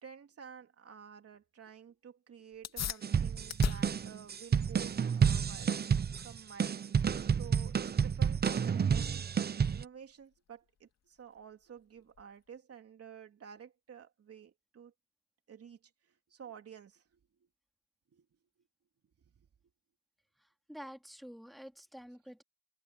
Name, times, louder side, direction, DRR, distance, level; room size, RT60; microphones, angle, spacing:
voice 1, 0.0-5.9 6.2-9.2 9.7-14.9 15.5-17.5 18.1-18.3 18.6-18.7 19.2-19.5, right 7 dB, 50° right, 3.3 m, -52 dB
sound 1, 2.5-12.6, left 8 dB, 60° left, 2.8 m, -45 dB
sound 2, 3.0-9.8, right 7 dB, 35° right, 0.8 m, -30 dB
voice 2, 20.4-22.4, equal, ahead, 3.0 m, -49 dB
cardioid pair, 90°, 30 cm